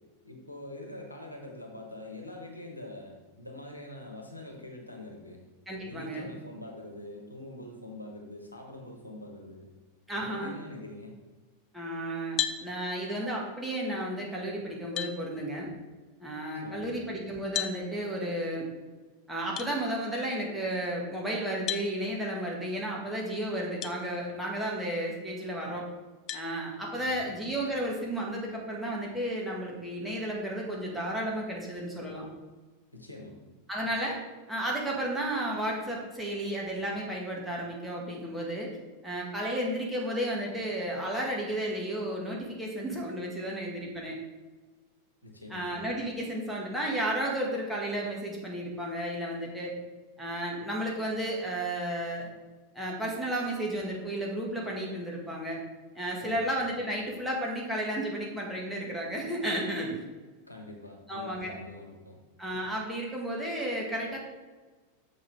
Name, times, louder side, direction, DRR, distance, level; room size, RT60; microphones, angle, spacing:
voice 1, 0.2-5.4 5.8-9.7 10.2-11.2 16.6-16.9 26.9-27.3 32.9-33.4 45.2-45.7 56.2-56.4 60.4-62.2, left 1 dB, 85° left, 1 dB, 1.3 m, -44 dB
voice 2, 5.7-6.3 10.1-10.5 11.7-15.7 16.2-18.7 19.3-25.9 26.3-32.3 33.7-34.2 34.5-38.7 39.0-44.2 45.5-49.8 50.2-52.3 52.7-55.6 55.9-60.0 61.1-61.6 62.4-64.2, right 1 dB, ahead, -4 dB, 2.0 m, -33 dB
sound 1, 12.4-12.6 14.3-14.4 15.0-15.2 17.5-17.8 19.6-19.7 21.7-21.9 23.8-24.0 24.6-24.7 26.3-26.5, left 10 dB, 35° left, 0.5 m, -32 dB
6.8 x 5.5 x 4.7 m, 1.3 s
figure-of-eight pair, 90°, 0 cm